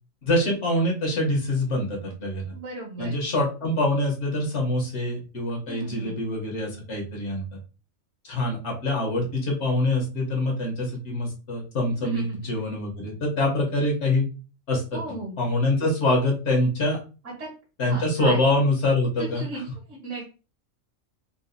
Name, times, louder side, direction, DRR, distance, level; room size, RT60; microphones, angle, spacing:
voice 1, 0.2-2.5 3.0-7.6 8.2-14.3 14.7-15.0 15.4-17.0 17.8-19.6, left 1 dB, 60° left, -1 dB, 1.3 m, -25 dB
voice 2, 2.5-3.1 5.7-6.2 11.9-12.6 14.9-15.4 17.2-17.5 17.8-18.4 19.2-19.6 19.9-20.2, right 2 dB, 70° right, -4 dB, 1.5 m, -36 dB
3.8 x 2.5 x 2.6 m, 0.34 s
omnidirectional pair, 1.3 m